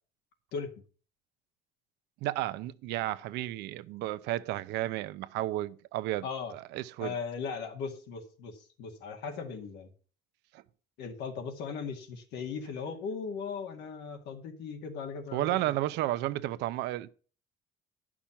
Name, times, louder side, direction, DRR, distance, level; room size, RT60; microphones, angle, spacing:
voice 1, 2.2-6.3 6.5-7.1 10.5-10.6 15.3-17.1, right 15 dB, 90° right, 0.7 m, -32 dB
voice 2, 6.2-6.5 7.0-9.9 11.0-15.6, left 5 dB, 85° left, 2.2 m, -38 dB
10.0 x 6.1 x 7.0 m
cardioid pair, 110°, 17 cm